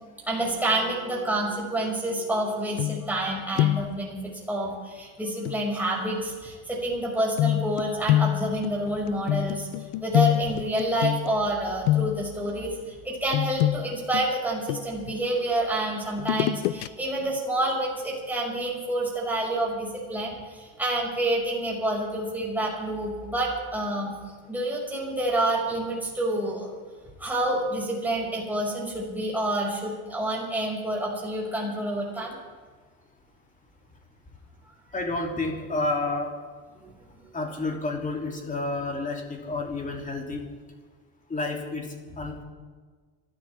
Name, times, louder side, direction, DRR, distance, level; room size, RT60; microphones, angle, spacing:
voice 1, 0.2-9.7 10.0-12.8 13.0-24.1 24.5-26.7 27.2-32.4, right 1 dB, 5° right, -4 dB, 6.2 m, -28 dB
sound 1, 2.8-3.3 3.6-4.0 5.5-5.6 7.4-11.5 11.8-12.4 13.3-15.2 16.2-16.9 17.3-17.4, left 14 dB, 75° left, 0.7 m, -26 dB
voice 2, 34.9-36.3 37.3-40.4 41.3-41.9 42.2-42.4, left 2 dB, 15° left, 1 dB, 3.1 m, -30 dB
27.5 x 13.0 x 3.6 m, 1.5 s
supercardioid pair, 130°, 44 cm